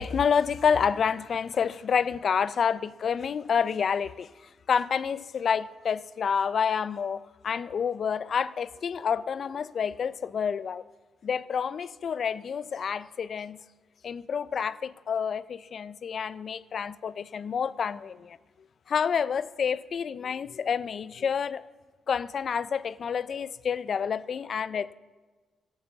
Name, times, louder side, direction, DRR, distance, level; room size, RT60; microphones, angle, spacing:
voice 1, 0.0-4.3 4.7-10.8 11.2-13.6 14.0-18.4 18.9-21.6 22.1-24.9, left 7 dB, 55° left, 0.4 m, -28 dB
13.0 x 6.0 x 7.3 m
cardioid pair, 90°, 0 cm